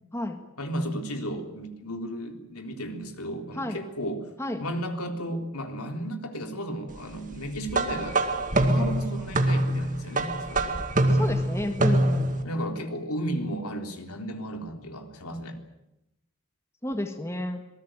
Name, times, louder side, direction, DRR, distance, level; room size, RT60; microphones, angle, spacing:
voice 1, 0.0-0.4 3.5-3.8 4.4-4.6 11.1-12.3 16.8-17.6, left 1 dB, 10° left, 6 dB, 1.8 m, -31 dB
voice 2, 0.6-4.3 4.6-8.2 8.5-10.8 12.4-15.6, equal, 80° left, 5 dB, 3.7 m, -34 dB
sound 1, 7.7-12.4, right 1 dB, 35° right, 2.1 m, -24 dB
26.5 x 19.5 x 9.1 m, 0.89 s
head